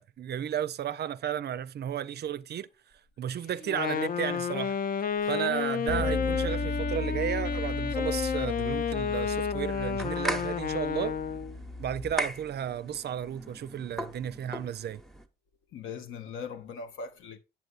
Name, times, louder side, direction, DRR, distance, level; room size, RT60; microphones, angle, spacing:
voice 1, 0.0-2.7 3.2-4.8 5.3-11.1 11.8-15.0, right 9 dB, 55° right, 0.4 m, -33 dB
Wind instrument woodwind instrument, 3.6-11.6, left 7 dB, 45° left, 0.4 m, -31 dB
Bass guitar, 5.9-12.1, left 2 dB, 30° left, 1.1 m, -36 dB
sound 1, 9.6-15.3, right 1 dB, ahead, 0.9 m, -39 dB
voice 2, 15.7-17.4, left 5 dB, 80° left, 0.8 m, -40 dB
7.8 x 7.1 x 2.4 m
supercardioid pair, 55°, 20 cm